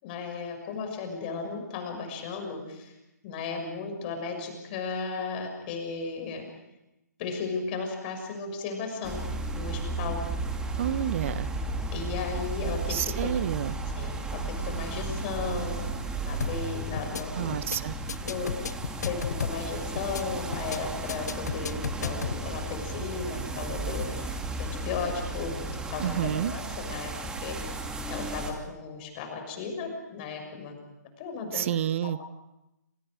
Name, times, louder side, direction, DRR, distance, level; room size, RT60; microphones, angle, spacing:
voice 1, 0.0-2.9 3.2-6.4 7.2-9.2 9.5-10.2 11.9-13.3 14.0-15.9 16.2-17.5 18.2-18.5 18.9-21.7 22.0-26.2 26.4-27.1 27.4-27.8 28.1-30.8 31.2-31.7 32.0-32.2, left 4 dB, 30° left, 4 dB, 6.7 m, -35 dB
sound 1, 9.0-28.5, right 2 dB, 10° right, 2.5 m, -34 dB
voice 2, 10.8-11.5 12.9-13.8 17.3-17.9 26.0-26.5 31.5-32.2, right 10 dB, 45° right, 15 dB, 1.2 m, -29 dB
sound 2, 16.4-16.7 17.0-17.2 17.5-17.8 18.1-19.7 20.0-20.2 20.5-20.8 21.1-22.4, left 6 dB, 65° left, 1.1 m, -33 dB
28.0 x 27.5 x 5.1 m, 0.91 s
figure-of-eight pair, 135°, 10 cm